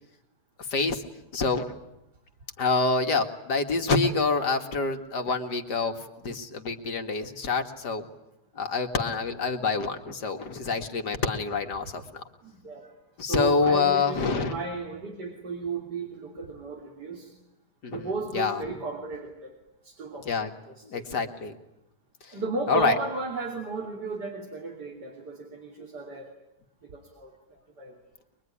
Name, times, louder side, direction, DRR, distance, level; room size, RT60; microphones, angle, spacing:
voice 1, 0.7-1.0 1.3-1.7 2.6-6.0 6.2-8.1 8.6-12.2 13.2-14.5 17.8-18.1 18.3-18.6 20.3-20.5 20.9-21.5 22.3-22.4 22.7-22.9, left 4 dB, 75° left, 5 dB, 2.6 m, -26 dB
voice 2, 12.4-12.9 13.2-17.4 17.9-19.6 19.8-20.3 20.7-21.3 22.3-26.3 26.8-27.3 27.8-28.0, right 3 dB, 80° right, 1 dB, 3.7 m, -34 dB
23.0 x 23.0 x 10.0 m, 0.88 s
omnidirectional pair, 1.8 m